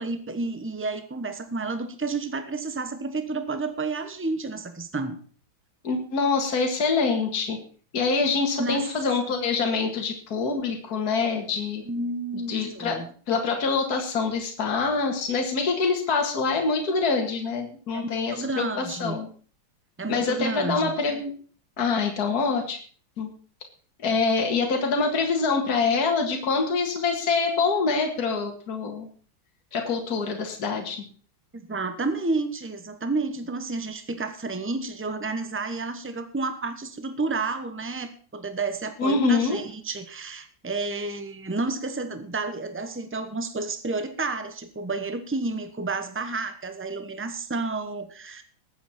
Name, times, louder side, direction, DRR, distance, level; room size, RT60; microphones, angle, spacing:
voice 1, 0.0-5.2 8.6-8.8 11.8-13.1 17.9-19.2 20.0-20.9 31.5-48.4, right 3 dB, 15° right, 9 dB, 0.5 m, -31 dB
voice 2, 5.8-7.6 7.9-11.8 12.5-19.3 20.1-21.3 21.8-22.8 23.2-23.3 24.0-29.1 29.7-31.0 39.0-39.6, left 4 dB, 50° left, 2 dB, 2.2 m, -25 dB
20.0 x 8.3 x 4.3 m, 0.42 s
omnidirectional pair, 2.2 m